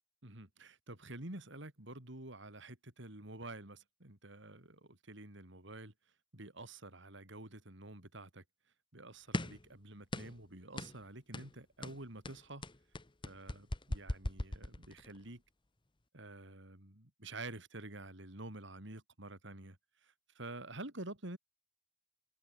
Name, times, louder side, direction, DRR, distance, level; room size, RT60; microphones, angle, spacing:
voice 1, 0.2-5.9 6.3-8.4 8.9-12.7 13.3-15.4 16.1-19.8 20.0-21.4, right 2 dB, 65° right, 4.0 m, -49 dB
sound 1, 9.3-9.7 10.1-10.4 10.8-11.0 11.3-11.5 11.8-15.2, left 1 dB, 25° left, 1.2 m, -39 dB
head